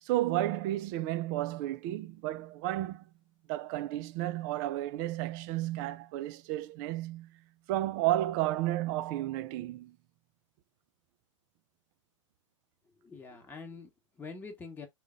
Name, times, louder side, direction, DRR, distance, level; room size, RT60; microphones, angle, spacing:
voice 1, 0.0-3.1 3.5-7.4 7.7-10.0, right 15 dB, 35° right, 0.4 m, -32 dB
voice 2, 12.8-14.9, left 4 dB, 10° left, 1.0 m, -46 dB
3.8 x 2.2 x 3.6 m
figure-of-eight pair, 105°, 16 cm